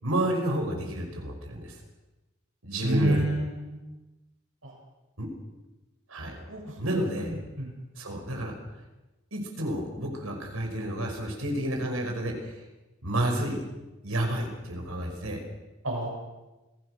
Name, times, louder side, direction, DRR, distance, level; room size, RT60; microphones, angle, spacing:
voice 1, 0.0-1.7 2.6-3.3 5.2-5.3 6.1-6.3 6.8-7.3 8.0-8.5 9.3-12.6 13.0-13.6 14.0-15.4, right 1 dB, 90° right, 2 dB, 5.3 m, -30 dB
voice 2, 2.8-3.8 4.6-4.7 6.5-6.7 7.2-7.7 15.8-16.1, right 1 dB, 70° right, 0 dB, 7.2 m, -28 dB
27.0 x 17.5 x 6.5 m, 1.1 s
head